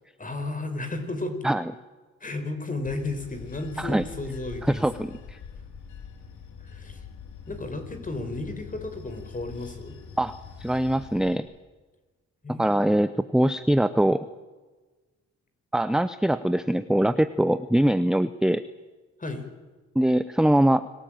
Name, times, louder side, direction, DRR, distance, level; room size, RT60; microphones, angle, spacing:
voice 1, 0.2-1.4 2.2-4.9 6.6-7.0 7.5-10.0 12.4-12.9 19.2-19.5, left 2 dB, 25° left, 7 dB, 5.0 m, -33 dB
Bell / Train, 2.8-11.4, left 6 dB, 75° left, 3.3 m, -44 dB
voice 2, 4.7-5.4 10.2-10.3 10.6-11.5 12.5-14.3 15.7-18.6 19.9-20.9, right 1 dB, ahead, 13 dB, 0.8 m, -22 dB
26.5 x 18.0 x 9.0 m, 1.3 s
cardioid pair, 90°, 29 cm